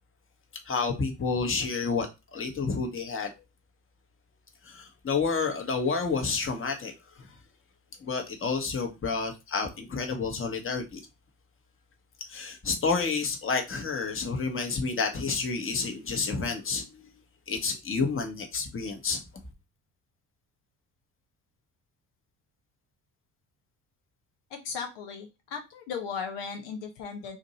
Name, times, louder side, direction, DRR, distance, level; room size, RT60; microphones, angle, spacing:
voice 1, 0.7-3.3 4.6-6.9 8.0-11.0 12.3-17.1 17.5-19.2, left 4 dB, 30° left, 1.1 m, -30 dB
voice 2, 24.5-27.4, left 6 dB, 70° left, 0.9 m, -36 dB
2.7 x 2.5 x 4.2 m
hypercardioid pair, 55°, 45 cm